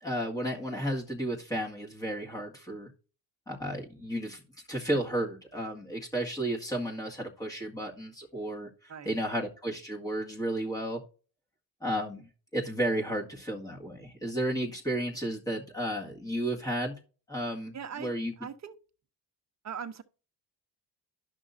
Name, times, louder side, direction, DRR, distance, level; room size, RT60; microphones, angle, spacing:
voice 1, 0.0-2.9 3.5-4.4 4.7-8.7 9.1-11.0 11.8-16.9 17.3-18.3, right 1 dB, 10° left, 1.8 m, -33 dB
voice 2, 17.7-18.7 19.6-20.0, right 7 dB, 40° right, 1.1 m, -40 dB
11.0 x 6.0 x 2.7 m
cardioid pair, 80°, 42 cm